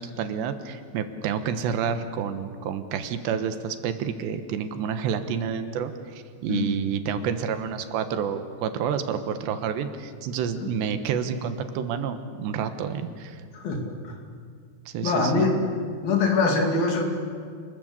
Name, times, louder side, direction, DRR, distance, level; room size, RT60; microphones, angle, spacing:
voice 1, 0.0-13.4 14.9-15.5, right 7 dB, 85° right, 9 dB, 3.5 m, -29 dB
voice 2, 13.5-14.1 15.0-15.6 16.0-17.1, left 3 dB, 60° left, 2 dB, 4.6 m, -23 dB
28.5 x 20.5 x 8.3 m, 2.2 s
omnidirectional pair, 4.9 m